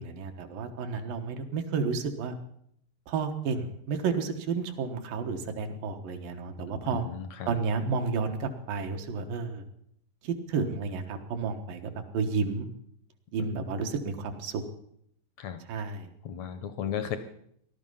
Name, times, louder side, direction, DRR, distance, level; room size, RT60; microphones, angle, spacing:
voice 1, 0.0-2.4 3.1-7.0 7.5-9.6 10.2-12.7 13.3-14.6 15.7-16.1, right 5 dB, 75° right, 5 dB, 3.0 m, -31 dB
voice 2, 6.9-7.5 13.5-13.6 15.4-15.6 16.2-17.2, left 9 dB, 75° left, 10 dB, 1.7 m, -35 dB
18.0 x 12.0 x 5.6 m, 0.71 s
omnidirectional pair, 4.0 m